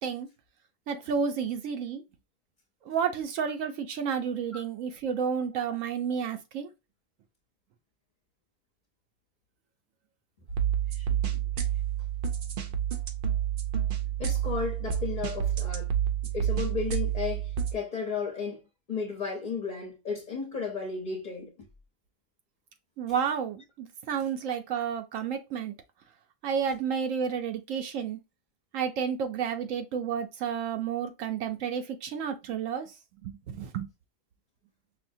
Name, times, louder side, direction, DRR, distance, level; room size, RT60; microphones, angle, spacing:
voice 1, 0.9-2.0 2.9-6.7 23.0-25.7 26.4-28.2 28.7-32.9 33.2-33.9, right 7 dB, 80° right, 1.0 m, -31 dB
sound 1, 10.5-17.7, right 10 dB, 55° right, 0.7 m, -29 dB
voice 2, 14.2-15.9 16.3-18.6 18.9-21.7, left 5 dB, 40° left, 1.0 m, -34 dB
5.5 x 2.2 x 2.6 m
omnidirectional pair, 1.4 m